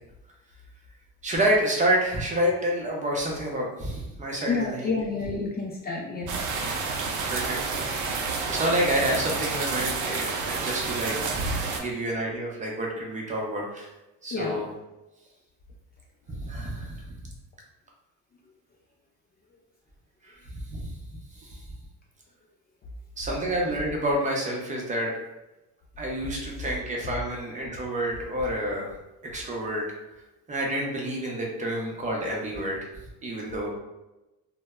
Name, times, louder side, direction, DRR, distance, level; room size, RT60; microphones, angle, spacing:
voice 1, 1.2-4.9 7.3-7.6 8.5-13.9 14.2-14.7 16.3-17.1 20.2-20.4 20.7-20.9 21.3-21.7 23.2-25.1 26.0-28.9 29.3-29.9 30.5-32.9 33.2-33.7, right 1 dB, 25° right, -2 dB, 0.6 m, -28 dB
voice 2, 4.5-6.3 11.7-11.9 14.3-14.6, left 4 dB, 30° left, -1 dB, 0.4 m, -30 dB
sound 1, 6.3-11.8, right 4 dB, 65° right, 0.6 m, -29 dB
2.1 x 2.0 x 3.4 m, 1.0 s
cardioid pair, 120°, 32 cm